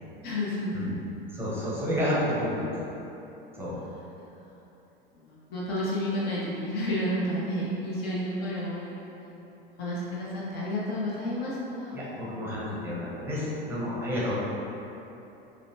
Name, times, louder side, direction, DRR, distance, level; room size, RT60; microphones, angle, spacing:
voice 1, 0.2-0.8 4.1-4.4 5.1-9.2 9.8-12.0, left 1 dB, 35° left, -7 dB, 0.9 m, -31 dB
voice 2, 1.3-2.8 3.5-3.8 11.9-14.3, left 1 dB, 10° right, -7 dB, 1.0 m, -30 dB
5.3 x 2.2 x 2.8 m, 3.0 s
figure-of-eight pair, 85°, 30 cm